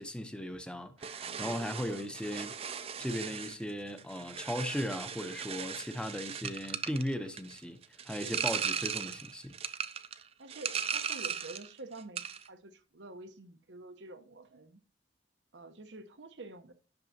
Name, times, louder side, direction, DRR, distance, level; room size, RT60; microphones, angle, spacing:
voice 1, 0.0-2.5 3.0-7.8 8.1-9.5, equal, 5° left, 0.7 m, -37 dB
sound 1, 1.0-11.7 12.0-12.5, right 7 dB, 35° right, 0.5 m, -38 dB
voice 2, 1.2-1.7 10.4-14.8 15.5-16.7, right 2 dB, 85° right, 1.0 m, -49 dB
10.5 x 6.1 x 2.8 m
head